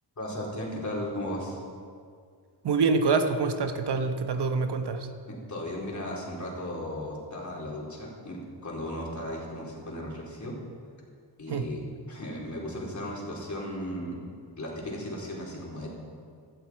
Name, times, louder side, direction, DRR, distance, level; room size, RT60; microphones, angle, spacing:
voice 1, 0.2-1.6 5.3-10.6 11.4-11.8 12.1-14.2 14.5-15.9, left 1 dB, 40° left, -3 dB, 4.1 m, -36 dB
voice 2, 2.6-5.1 11.5-11.6, right 4 dB, 60° right, 7 dB, 1.1 m, -26 dB
17.0 x 11.5 x 4.6 m, 2.1 s
cardioid pair, 85°, 45 cm